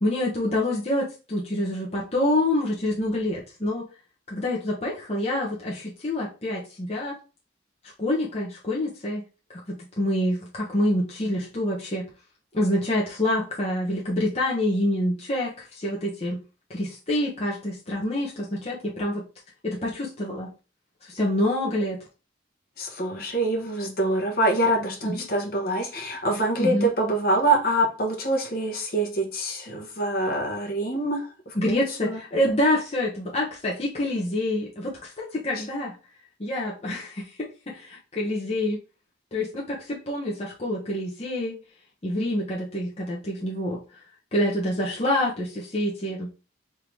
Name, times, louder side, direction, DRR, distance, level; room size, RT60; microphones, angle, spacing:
voice 1, 0.0-3.8 4.3-7.2 8.0-9.2 9.5-12.1 12.5-16.4 16.7-19.2 19.6-20.5 21.0-22.0 25.0-25.2 26.6-26.9 31.5-35.9 36.4-38.8 39.3-41.6 42.0-43.8 44.3-46.3, left 1 dB, 35° left, -4 dB, 0.9 m, -27 dB
voice 2, 22.8-32.2 35.6-35.7, right 1 dB, 50° left, 1 dB, 1.1 m, -25 dB
3.5 x 2.8 x 4.6 m, 0.33 s
head